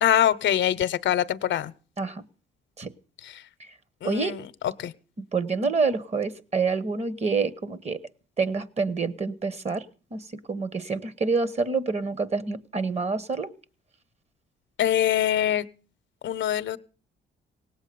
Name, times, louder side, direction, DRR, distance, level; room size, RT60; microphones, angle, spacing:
voice 1, 0.0-1.7 3.2-3.4 4.0-4.9 14.8-15.7 16.2-16.8, left 11 dB, 70° left, 15 dB, 0.8 m, -24 dB
voice 2, 4.0-4.3 5.3-8.0 8.4-9.8 10.1-13.5, right 4 dB, 35° right, 16 dB, 1.2 m, -27 dB
18.0 x 8.2 x 6.8 m, 0.40 s
cardioid pair, 90°, 20 cm